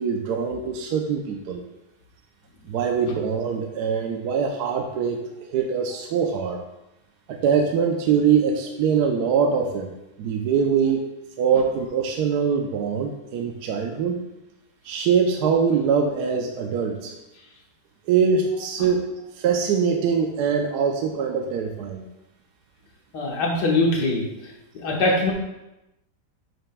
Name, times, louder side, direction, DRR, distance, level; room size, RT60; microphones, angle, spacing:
voice 1, 0.0-1.6 2.7-5.2 5.5-6.6 7.3-9.9 10.2-11.0 11.4-14.2 14.9-17.1 18.1-19.0 19.4-22.1, right 6 dB, 75° right, 3 dB, 1.1 m, -23 dB
voice 2, 23.1-24.3 24.8-25.3, left 2 dB, 75° left, -1 dB, 1.9 m, -22 dB
8.7 x 6.6 x 2.2 m, 0.95 s
omnidirectional pair, 1.8 m